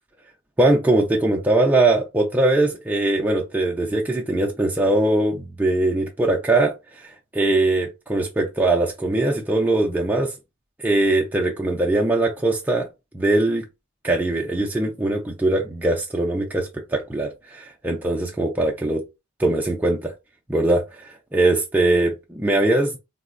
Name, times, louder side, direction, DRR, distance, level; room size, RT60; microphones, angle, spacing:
voice 1, 0.6-7.1 7.3-10.3 10.8-12.9 13.1-13.6 14.0-19.0 19.4-20.1 20.5-21.0 21.3-23.0, right 2 dB, 10° right, 0.3 m, -21 dB
3.8 x 2.0 x 2.4 m
head